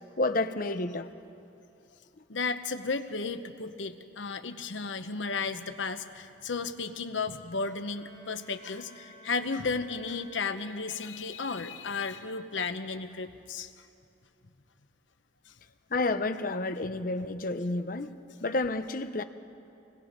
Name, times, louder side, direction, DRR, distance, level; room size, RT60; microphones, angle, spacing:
voice 1, 0.2-1.1 15.9-19.2, left 2 dB, 50° left, 10 dB, 0.8 m, -30 dB
voice 2, 2.3-13.9 15.5-15.6, left 4 dB, 90° left, 8 dB, 1.0 m, -34 dB
Bowed string instrument, 7.5-11.0, equal, 65° right, 3.5 m, -55 dB
25.0 x 20.5 x 5.3 m, 2.7 s
head